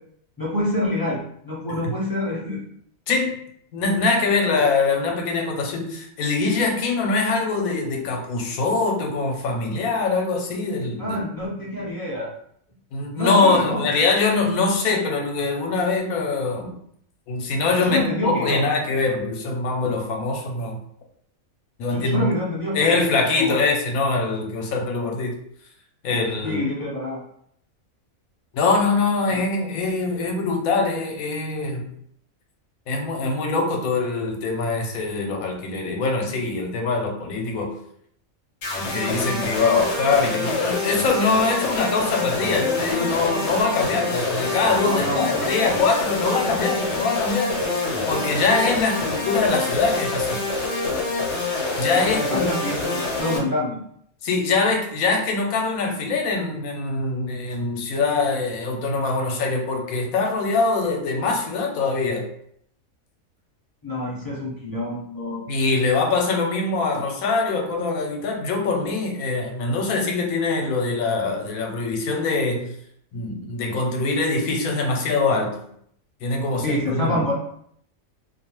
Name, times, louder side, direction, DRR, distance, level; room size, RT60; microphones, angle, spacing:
voice 1, 0.4-2.6 11.0-12.3 13.1-13.8 17.8-18.6 21.9-23.0 23.4-23.6 26.4-27.2 29.3-29.4 44.8-45.8 51.9-53.8 63.8-65.4 76.6-77.3, left 1 dB, 25° left, -6 dB, 0.4 m, -26 dB
voice 2, 3.1-3.4 3.7-11.2 12.9-16.7 17.3-20.8 21.8-22.3 22.7-25.4 26.0-26.6 28.5-31.9 32.9-37.7 38.8-47.5 48.1-50.4 51.8-52.5 54.2-62.3 65.5-72.7 73.1-75.6 76.2-77.3, left 3 dB, 85° left, 2 dB, 1.0 m, -23 dB
sound 1, 38.6-53.4, left 2 dB, 65° left, 0.9 m, -26 dB
2.4 x 2.3 x 2.9 m, 0.67 s
omnidirectional pair, 1.5 m